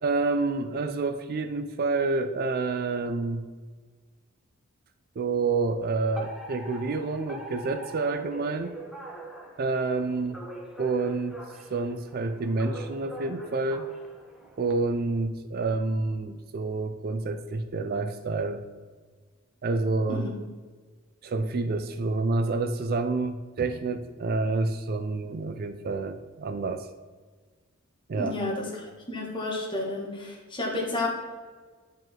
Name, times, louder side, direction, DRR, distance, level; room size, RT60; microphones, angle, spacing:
voice 1, 0.0-3.4 5.2-8.7 9.6-10.4 10.8-11.4 11.7-13.9 14.6-18.6 19.6-20.3 21.2-26.9 28.1-28.4, right 3 dB, 45° right, 9 dB, 0.4 m, -28 dB
Alarm, 6.2-14.7, right 1 dB, ahead, 1.1 m, -43 dB
voice 2, 28.1-31.1, left 2 dB, 25° left, -2 dB, 1.7 m, -31 dB
9.3 x 5.2 x 3.7 m, 1.4 s
head